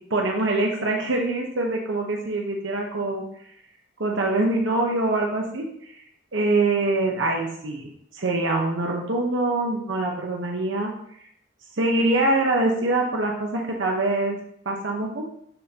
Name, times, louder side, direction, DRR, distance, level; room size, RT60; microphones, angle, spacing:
voice 1, 0.1-3.2 4.0-6.0 6.3-10.9 11.8-14.4 14.7-15.2, right 2 dB, 70° right, 0 dB, 0.9 m, -24 dB
10.5 x 3.7 x 2.9 m, 0.70 s
head